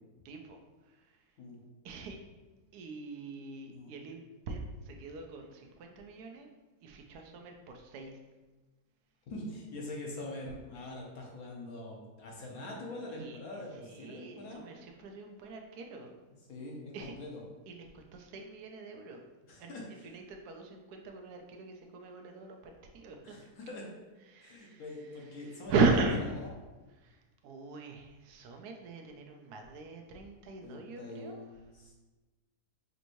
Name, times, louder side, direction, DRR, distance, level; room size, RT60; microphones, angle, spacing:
voice 1, 0.2-1.3 1.8-2.2 2.7-6.5 6.8-8.2 13.1-16.1 16.9-17.1 17.7-19.2 19.6-23.4 24.3-26.2 27.0-31.4, right 3 dB, 80° right, 3 dB, 1.1 m, -38 dB
voice 2, 9.3-14.6 16.5-16.9 17.2-17.4 19.5-19.8 23.2-23.9 24.4-26.0 30.6-31.9, left 2 dB, 70° left, -2 dB, 1.3 m, -43 dB
5.3 x 3.0 x 2.6 m, 1.2 s
omnidirectional pair, 1.7 m